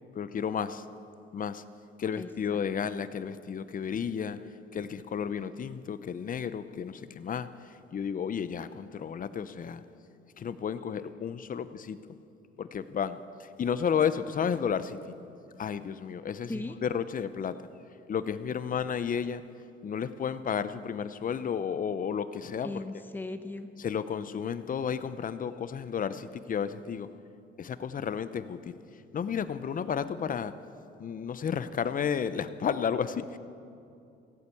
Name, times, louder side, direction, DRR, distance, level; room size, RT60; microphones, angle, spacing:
voice 1, 0.1-0.8 1.3-1.6 2.0-4.4 4.7-7.5 7.9-9.8 10.4-12.0 12.6-15.2 15.6-17.6 18.1-19.4 19.8-22.8 23.8-27.1 27.6-28.8 29.1-30.5 31.0-33.4, left 7 dB, 45° left, 13 dB, 0.6 m, -32 dB
voice 2, 2.2-2.6 16.5-16.8 22.6-23.7, left 2 dB, 10° left, 7 dB, 0.8 m, -38 dB
16.0 x 8.2 x 8.4 m, 2.6 s
cardioid pair, 90°, 20 cm